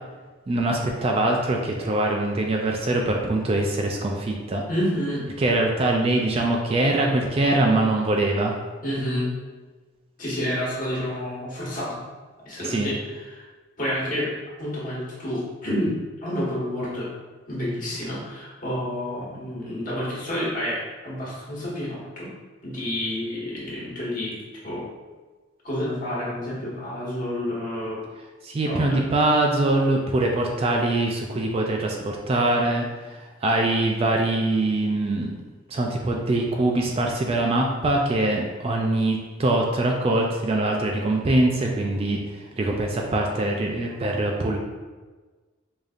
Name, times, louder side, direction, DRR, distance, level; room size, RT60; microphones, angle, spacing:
voice 1, 0.5-4.6 5.4-8.5 12.7-12.9 28.4-35.3 35.7-42.2 42.6-44.6, right 2 dB, 30° right, 1 dB, 0.3 m, -23 dB
voice 2, 4.7-5.3 8.8-9.3 10.2-12.0 12.4-13.5 13.8-14.3 14.6-17.1 17.5-22.3 22.6-24.3 24.6-24.9 25.6-28.0 28.7-29.0, equal, 40° left, -7 dB, 1.3 m, -29 dB
4.9 x 2.6 x 2.4 m, 1.3 s
head